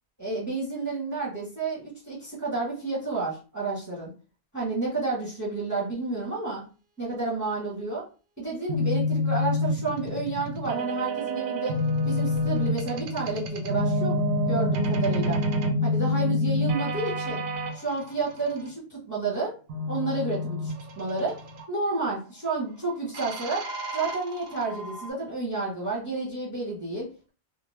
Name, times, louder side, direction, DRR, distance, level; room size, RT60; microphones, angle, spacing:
voice 1, 0.2-4.1 4.5-6.6 7.0-8.0 8.4-11.8 12.1-14.1 14.5-15.4 15.8-17.4 17.7-19.5 19.9-21.4 21.7-23.7 23.9-27.3, right 3 dB, 15° right, -4 dB, 0.9 m, -30 dB
sound 1, 8.7-17.7 19.7-21.6 23.1-25.1, left 1 dB, 70° right, 0.9 m, -28 dB
2.6 x 2.2 x 3.1 m, 0.35 s
omnidirectional pair, 1.2 m